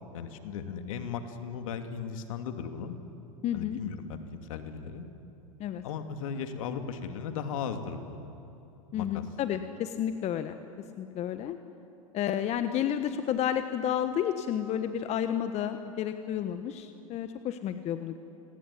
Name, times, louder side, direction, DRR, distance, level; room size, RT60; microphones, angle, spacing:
voice 1, 0.1-3.0 3.5-5.1 5.8-8.2 8.9-9.2, left 6 dB, 65° left, 7 dB, 2.6 m, -37 dB
voice 2, 3.4-3.8 5.6-5.8 8.9-10.6 11.0-11.6 12.1-18.2, left 10 dB, 35° left, 9 dB, 1.3 m, -31 dB
30.0 x 19.5 x 10.0 m, 2.9 s
hypercardioid pair, 100°, 18 cm